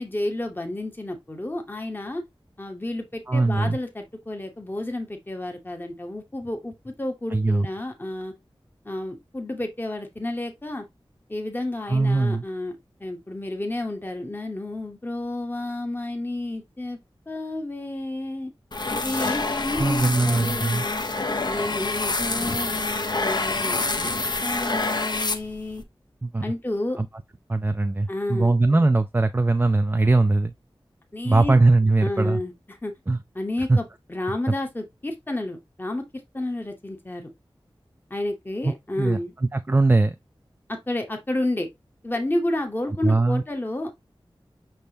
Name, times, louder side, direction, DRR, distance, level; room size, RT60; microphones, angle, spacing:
voice 1, 0.0-2.2 2.6-8.3 8.8-10.9 11.3-12.7 13.0-17.0 17.3-18.5 19.0-21.0 21.5-24.1 24.4-25.8 26.4-27.0 28.1-28.5 31.1-31.5 32.0-32.9 33.3-36.0 36.3-37.3 38.1-39.3 40.7-41.7 42.0-43.9, left 1 dB, 20° left, 0.9 m, -31 dB
voice 2, 3.3-3.8 7.3-7.7 11.9-12.4 19.7-20.8 26.2-26.5 27.0-27.1 27.5-30.5 31.2-32.4 33.1-33.2 33.7-33.8 38.6-39.2 39.5-40.1 43.0-43.4, right 2 dB, 20° right, 0.3 m, -20 dB
sound 1, 18.7-25.8, left 3 dB, 50° left, 0.6 m, -27 dB
5.2 x 3.4 x 2.7 m
wide cardioid pair, 50°, 9 cm